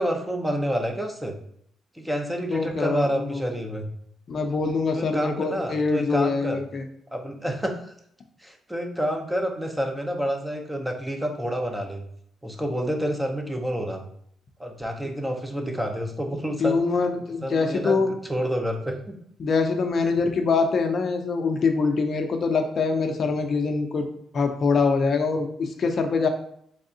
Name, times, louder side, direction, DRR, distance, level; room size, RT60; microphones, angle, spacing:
voice 1, 0.0-1.4 1.9-3.9 4.9-6.6 7.1-7.9 8.4-12.0 12.4-14.0 14.6-16.8 17.4-19.2, equal, 10° right, 3 dB, 0.6 m, -28 dB
voice 2, 2.5-3.4 4.3-6.8 16.6-18.1 19.4-24.1 24.3-26.3, left 4 dB, 50° left, 5 dB, 0.5 m, -24 dB
3.4 x 3.3 x 2.7 m, 0.68 s
cardioid pair, 90°, 0 cm